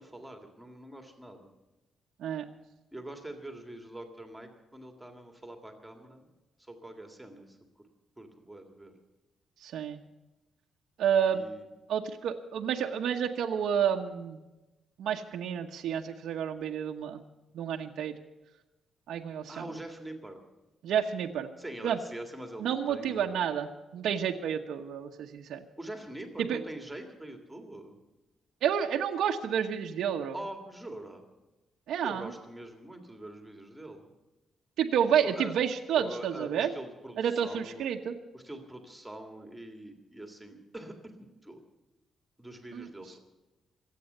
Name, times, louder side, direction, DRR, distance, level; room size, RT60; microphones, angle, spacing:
voice 1, 0.0-1.5 2.9-6.3 6.7-7.6 8.2-8.9 11.3-11.7 19.5-20.4 21.6-23.5 25.8-28.0 30.3-31.3 32.0-34.1 35.2-35.6 36.0-37.9 38.3-41.6 42.4-43.2, right 1 dB, 5° right, 4 dB, 1.9 m, -44 dB
voice 2, 9.6-10.0 11.0-11.4 11.9-14.4 15.0-17.2 17.5-18.1 19.1-19.6 20.8-21.5 21.8-22.0 22.6-25.6 26.4-26.6 28.6-30.4 31.9-32.3 34.8-36.7 37.2-38.1 42.7-42.9, right 8 dB, 90° right, 1 dB, 1.1 m, -30 dB
25.0 x 8.6 x 6.7 m, 1.1 s
cardioid pair, 165°, 0 cm